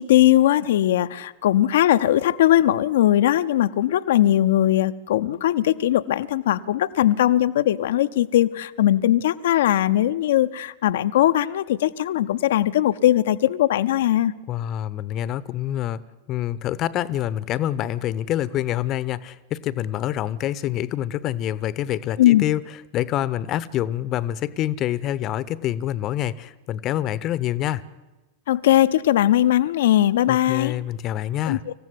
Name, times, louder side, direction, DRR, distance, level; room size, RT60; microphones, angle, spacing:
voice 1, 0.0-14.3 22.2-22.4 28.5-30.7 31.5-31.6, left 13 dB, 60° left, 12 dB, 0.8 m, -19 dB
voice 2, 14.5-16.0 16.3-22.6 22.9-27.8 30.3-31.6, left 12 dB, 35° left, 19 dB, 1.0 m, -26 dB
26.0 x 15.5 x 9.7 m, 1.2 s
figure-of-eight pair, 90°, 0 cm